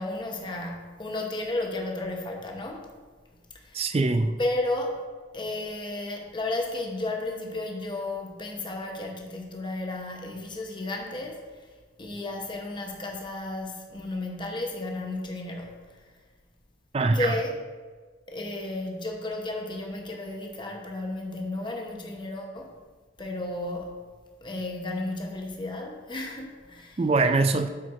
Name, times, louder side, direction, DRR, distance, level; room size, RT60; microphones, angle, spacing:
voice 1, 0.0-2.9 3.6-3.8 4.4-5.0 5.3-11.4 12.0-15.8 17.1-17.6 18.3-22.7 23.2-23.9 24.4-27.0, left 2 dB, 25° left, 0.9 m, -33 dB
voice 2, 3.7-4.4 16.9-17.3 27.0-27.7, right 3 dB, 30° right, 0.4 m, -23 dB
8.6 x 4.6 x 4.7 m
head